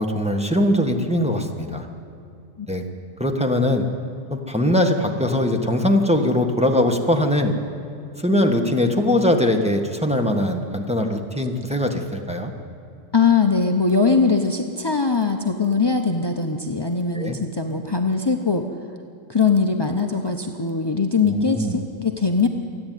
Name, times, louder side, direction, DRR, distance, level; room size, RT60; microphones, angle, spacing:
voice 1, 0.0-1.9 2.7-2.8 3.2-3.8 4.3-7.6 8.2-12.5 17.1-17.4 21.2-21.8, left 1 dB, 5° right, 2 dB, 1.3 m, -21 dB
voice 2, 13.1-18.6 19.3-22.5, left 4 dB, 30° left, 4 dB, 0.4 m, -21 dB
27.0 x 10.5 x 9.4 m, 2.6 s
omnidirectional pair, 1.9 m